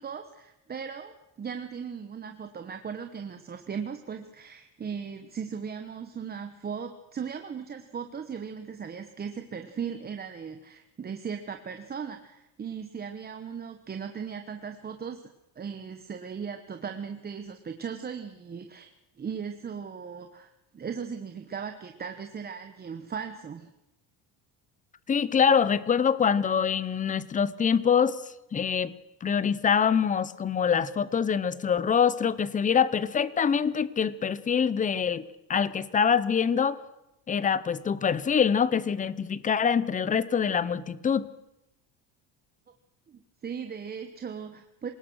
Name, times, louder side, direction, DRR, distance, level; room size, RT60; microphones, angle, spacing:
voice 1, 0.0-18.9 19.2-23.7 43.1-44.9, right 6 dB, 20° right, 6 dB, 1.1 m, -38 dB
voice 2, 25.1-28.2 28.5-28.9 29.2-36.8 37.3-41.3, left 7 dB, 20° left, 18 dB, 0.8 m, -25 dB
27.0 x 18.5 x 6.3 m, 0.90 s
cardioid pair, 155°, 42 cm